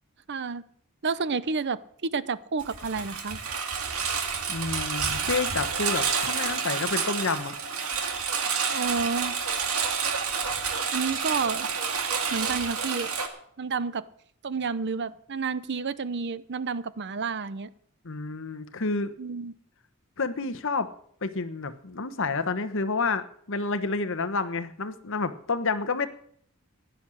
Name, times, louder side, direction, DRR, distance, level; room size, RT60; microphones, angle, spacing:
voice 1, 0.3-0.6 1.0-3.4 8.7-9.3 10.9-11.7 12.3-13.1 13.6-14.1 14.4-17.7 19.2-19.5, right 5 dB, 55° right, 16 dB, 0.7 m, -30 dB
Engine, 2.6-13.3, right 6 dB, 80° right, 2.2 m, -29 dB
voice 2, 4.5-7.5 18.0-19.1 20.2-20.9 21.2-26.1, left 4 dB, 60° left, 11 dB, 1.1 m, -29 dB
16.0 x 10.5 x 6.4 m, 0.63 s
head